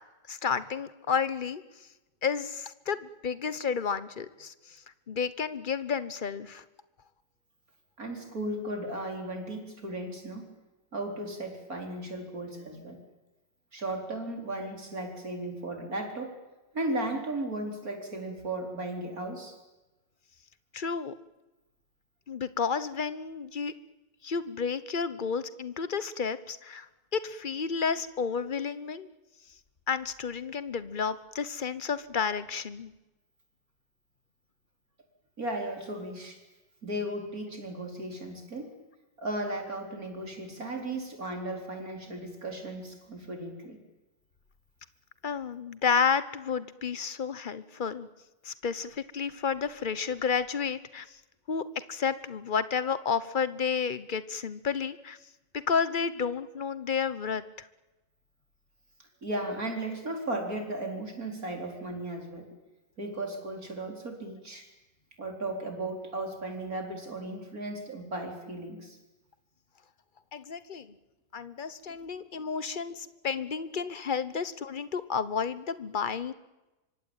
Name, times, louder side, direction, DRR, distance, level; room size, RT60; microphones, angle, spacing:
voice 1, 0.3-1.6 2.2-4.5 5.1-6.6 20.7-21.1 22.3-23.7 24.2-26.9 27.1-29.1 29.9-32.9 45.2-48.1 48.4-51.1 51.5-55.2 55.7-57.7 70.3-70.9 71.3-76.3, left 6 dB, 35° left, 15 dB, 0.8 m, -31 dB
voice 2, 8.0-10.4 10.9-13.0 13.7-16.4 16.7-19.5 35.4-36.4 36.8-38.7 39.2-43.8 59.2-62.5 63.0-64.7 65.2-69.0 71.9-72.0 73.5-73.6, right 1 dB, 50° right, 3 dB, 4.9 m, -35 dB
25.5 x 24.0 x 9.0 m, 1.1 s
omnidirectional pair, 2.0 m